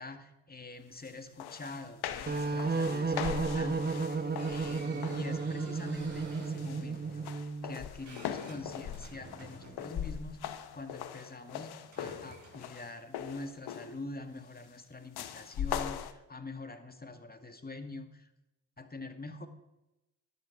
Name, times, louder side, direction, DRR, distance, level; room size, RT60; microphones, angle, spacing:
voice 1, 0.0-10.4 10.7-18.3 18.8-19.5, left 2 dB, 25° left, 7 dB, 2.1 m, -45 dB
sound 1, 1.1-1.2 1.4-5.4 5.9-6.2 6.6-14.0 15.2-16.1, left 9 dB, 70° left, 1.1 m, -40 dB
sound 2, 2.3-7.8, right 4 dB, 25° right, 1.5 m, -33 dB
sound 3, 4.4-10.9 11.8-12.8, right 3 dB, 45° right, 5.5 m, -53 dB
13.5 x 10.5 x 4.8 m, 0.95 s
supercardioid pair, 50°, 39 cm